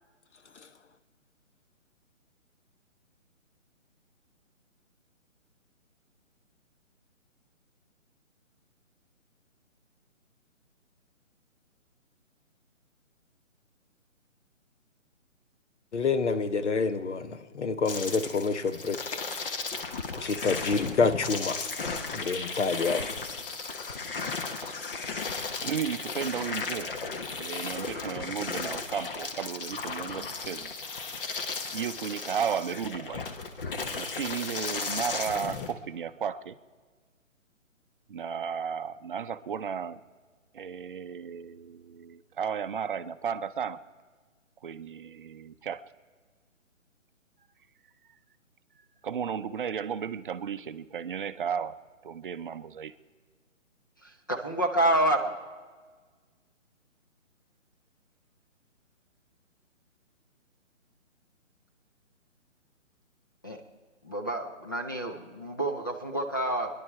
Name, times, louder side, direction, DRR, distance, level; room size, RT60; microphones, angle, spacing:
voice 1, 15.9-19.2 19.5-19.7 20.2-21.7 22.1-23.0, left 4 dB, 60° left, 1.2 m, -28 dB
sound 1, 17.9-35.7, left 4 dB, 45° left, 1.3 m, -35 dB
voice 2, 25.6-26.9 27.4-30.7 31.7-33.3 34.0-36.6 38.1-40.0 40.5-43.8 44.6-45.8 49.0-51.8 52.0-52.9, right 7 dB, 40° right, 0.6 m, -34 dB
voice 3, 54.0-55.3 63.4-63.6 64.0-66.7, right 1 dB, 15° left, 0.5 m, -28 dB
26.5 x 11.0 x 4.6 m
figure-of-eight pair, 150°, 40 cm